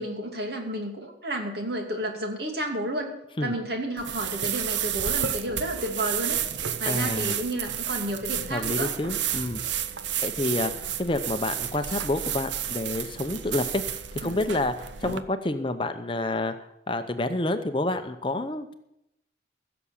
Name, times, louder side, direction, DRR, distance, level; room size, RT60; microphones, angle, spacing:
voice 1, 0.0-3.1 3.4-6.4 6.8-8.9 14.2-14.6, right 1 dB, 60° right, 2 dB, 2.5 m, -31 dB
sound 1, 4.0-15.2, right 9 dB, 75° right, 0.7 m, -31 dB
voice 2, 6.9-7.3 8.5-9.6 10.2-10.7 11.0-14.7 15.0-16.5 16.9-18.7, left 2 dB, 25° left, 8 dB, 0.7 m, -28 dB
16.0 x 7.0 x 7.2 m, 0.82 s
head